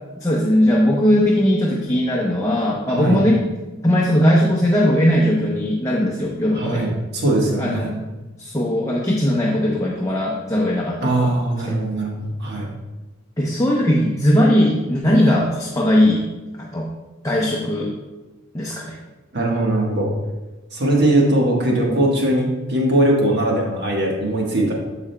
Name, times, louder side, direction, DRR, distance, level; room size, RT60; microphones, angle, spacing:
voice 1, 0.2-3.4 3.8-6.8 7.6-7.9 8.4-11.3 11.7-11.8 13.4-16.2 16.6-16.9 17.2-17.9 18.5-19.0, equal, 15° left, -3 dB, 0.7 m, -19 dB
voice 2, 2.9-3.2 6.5-7.9 11.0-12.6 19.3-20.1 20.7-24.7, right 1 dB, 55° right, -2 dB, 1.3 m, -20 dB
14.0 x 4.9 x 2.2 m, 1.1 s
head